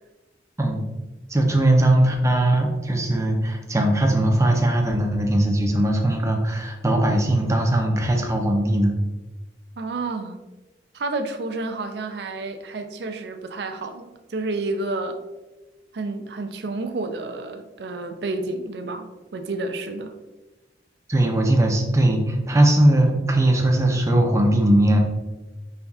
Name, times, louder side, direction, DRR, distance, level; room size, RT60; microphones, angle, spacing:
voice 1, 1.3-9.0 21.1-25.0, right 1 dB, 15° right, 2 dB, 0.5 m, -19 dB
voice 2, 9.8-10.4 10.9-15.2 15.9-19.1 19.3-20.1, right 2 dB, 65° right, 6 dB, 0.5 m, -30 dB
5.4 x 3.3 x 2.4 m, 1.1 s
head